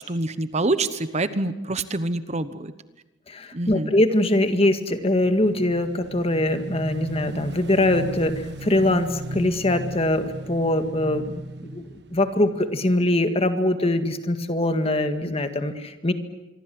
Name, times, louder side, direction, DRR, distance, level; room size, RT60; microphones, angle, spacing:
voice 1, 0.0-2.7 3.5-3.9, right 2 dB, 35° right, 12 dB, 1.1 m, -26 dB
voice 2, 3.3-11.3 11.6-11.8 12.1-16.1, left 1 dB, 30° left, 8 dB, 1.9 m, -22 dB
Motorcycle / Engine, 4.7-13.2, right 1 dB, 60° right, 1.4 m, -36 dB
26.0 x 24.0 x 7.8 m, 1.0 s
head